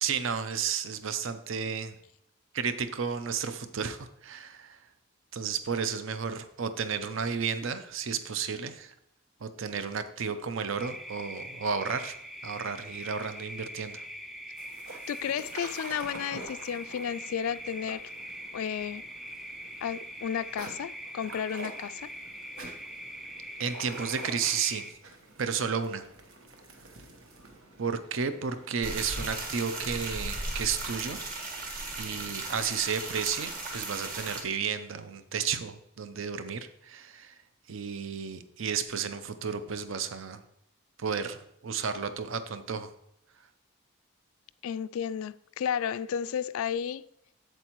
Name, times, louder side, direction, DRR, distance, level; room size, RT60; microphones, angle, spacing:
voice 1, 0.0-1.9 2.5-4.8 5.3-8.9 9.4-12.2 12.4-14.0 23.6-24.9 25.4-26.0 27.8-31.2 31.9-37.4 37.7-40.4 41.0-42.9, right 6 dB, 70° right, 0.6 m, -32 dB
sound 1, 10.8-24.9, equal, ahead, 0.4 m, -43 dB
sound 2, 14.6-33.6, right 2 dB, 90° right, 1.2 m, -49 dB
voice 2, 15.1-18.1 18.5-19.0 19.8-22.1 44.6-47.1, left 8 dB, 80° left, 0.3 m, -33 dB
sound 3, 28.8-34.4, right 2 dB, 40° right, 1.5 m, -36 dB
7.9 x 7.8 x 3.0 m
head